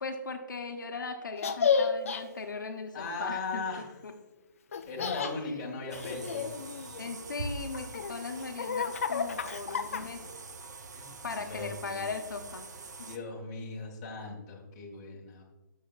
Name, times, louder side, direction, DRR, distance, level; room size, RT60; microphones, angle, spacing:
voice 1, 0.0-4.2 5.3-5.6 7.0-10.3 11.2-12.7, left 4 dB, 70° left, 5 dB, 0.9 m, -38 dB
Laughter, 1.4-2.2 4.7-5.3 5.9-7.2 7.7-10.3, left 6 dB, 45° left, 0.5 m, -31 dB
voice 2, 2.9-3.9 4.9-6.5 10.9-11.1 11.5-12.0 13.0-15.4, left 3 dB, 20° left, -2 dB, 1.2 m, -38 dB
sound 1, 5.9-13.2, right 3 dB, 60° right, 0.7 m, -44 dB
11.5 x 6.4 x 2.4 m, 1.1 s
hypercardioid pair, 170°, 11 cm